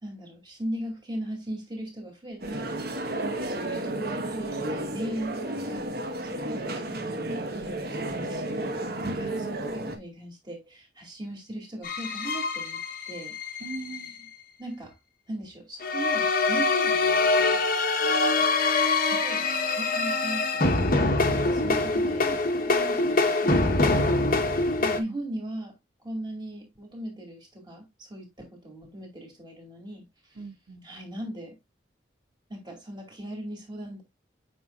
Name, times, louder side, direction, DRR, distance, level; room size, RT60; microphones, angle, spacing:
voice 1, 0.0-3.1 3.5-5.9 6.3-8.9 9.1-12.8 13.1-13.3 14.6-15.0 15.3-17.6 19.0-20.9 21.5-24.7 25.0-25.8 26.0-30.1 30.8-31.6 32.5-34.0, right 1 dB, 25° right, 2.6 m, -39 dB
sound 1, 2.4-10.0, right 1 dB, 50° right, 1.2 m, -32 dB
voice 2, 3.6-4.2 9.0-9.5 13.6-14.3 21.7-22.4 24.8-25.1 30.4-30.8, right 2 dB, 85° right, 1.7 m, -40 dB
sound 2, 11.8-14.1 15.8-25.0, left 3 dB, 45° left, 1.0 m, -24 dB
8.5 x 5.3 x 2.4 m
head